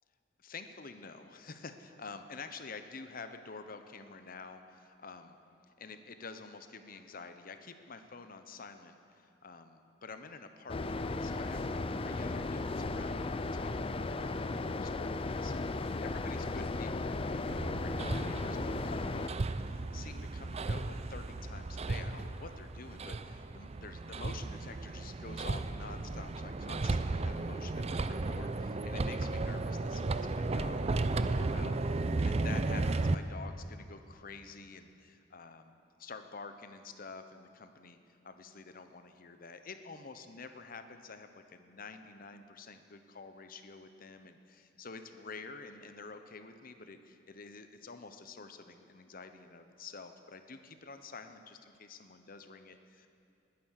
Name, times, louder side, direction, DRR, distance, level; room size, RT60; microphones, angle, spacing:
voice 1, 0.4-5.4 5.8-35.7 36.0-53.1, left 4 dB, 50° left, 8 dB, 0.9 m, -49 dB
sound 1, 10.7-19.3, left 2 dB, 30° left, 0.5 m, -35 dB
Hammer, 17.5-33.2, right 2 dB, 35° right, 0.5 m, -34 dB
20.0 x 9.5 x 6.6 m, 2.5 s
head